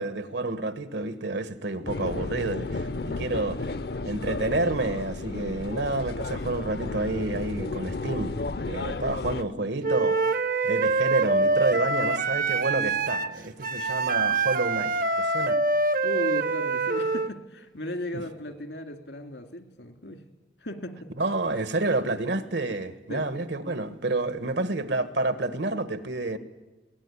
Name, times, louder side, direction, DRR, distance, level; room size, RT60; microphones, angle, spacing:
voice 1, 0.0-3.7 4.0-8.4 8.6-10.2 10.6-15.6 18.1-18.2 21.2-26.4, right 2 dB, 80° right, 12 dB, 1.5 m, -29 dB
sound 1, 1.9-9.4, left 3 dB, 60° left, 0.7 m, -33 dB
Wind instrument woodwind instrument, 9.8-17.3, right 3 dB, 50° right, 0.7 m, -25 dB
voice 2, 16.0-20.2 20.6-21.1 23.1-23.3, left 1 dB, 80° left, 7 dB, 2.3 m, -36 dB
21.0 x 18.0 x 9.9 m, 1.2 s
head